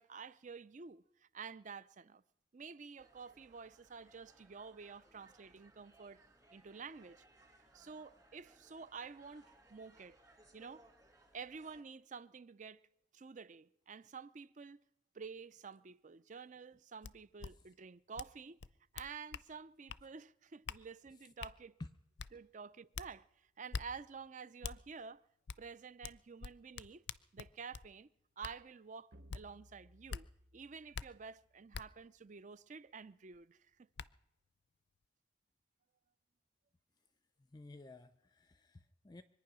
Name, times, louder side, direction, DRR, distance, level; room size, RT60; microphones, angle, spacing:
voice 1, 0.0-2.2 2.5-6.2 6.5-7.2 7.7-10.2 10.5-10.9 11.3-12.8 13.1-14.8 15.1-18.6 18.9-21.8 22.3-25.2 25.6-27.0 27.3-28.1 28.4-30.3 30.5-33.6, right 5 dB, 45° right, 0.5 m, -50 dB
sound 1, 3.0-11.8, right 2 dB, 20° right, 2.3 m, -66 dB
sound 2, 17.0-17.1 17.4-17.5 18.2-18.3 18.6-19.5 19.9-20.0 20.7-20.8 21.4-21.5 22.2-22.3 22.9-23.1 23.7-23.9 24.6-24.8 25.5-25.6 26.0-27.9 28.4-28.6 29.3-29.4 30.1-30.2 30.9-31.1 31.7-31.8 33.3-33.4 34.0-34.1, left 6 dB, 80° left, 0.5 m, -44 dB
sound 3, 29.1-31.7, equal, 65° right, 1.0 m, -63 dB
voice 2, 37.4-39.2, left 2 dB, 25° left, 0.5 m, -53 dB
24.5 x 9.5 x 6.2 m
head